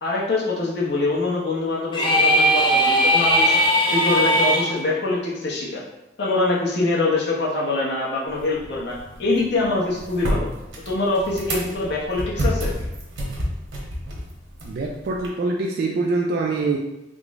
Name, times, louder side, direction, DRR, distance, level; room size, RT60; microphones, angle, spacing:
voice 1, 0.0-3.6 3.9-5.8 6.2-10.5 10.9-12.7, left 2 dB, 60° left, -4 dB, 0.8 m, -24 dB
sound 1, 1.9-4.7, equal, 25° left, 0.5 m, -18 dB
sound 2, 8.3-15.3, equal, 75° right, 0.9 m, -30 dB
voice 2, 14.6-16.8, right 3 dB, 55° right, -1 dB, 0.3 m, -24 dB
3.7 x 2.0 x 3.5 m, 0.95 s
head